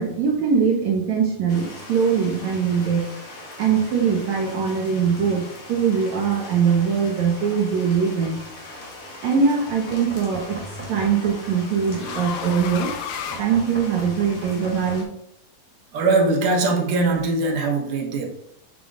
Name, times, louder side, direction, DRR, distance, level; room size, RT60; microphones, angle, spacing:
voice 1, 0.0-3.1 3.6-8.5 9.2-12.9 13.4-15.1, right 6 dB, 65° right, 0 dB, 2.0 m, -22 dB
sound 1, 1.5-15.0, left 2 dB, 55° left, 2.8 m, -41 dB
sound 2, 8.6-8.8 10.3-14.2, left 8 dB, 85° left, 2.7 m, -35 dB
Knock, 9.7-11.4 13.3-15.0, right 1 dB, 5° right, 2.1 m, -39 dB
voice 2, 15.9-18.3, right 3 dB, 80° right, 1 dB, 3.0 m, -21 dB
7.7 x 6.9 x 2.5 m, 0.74 s
omnidirectional pair, 4.3 m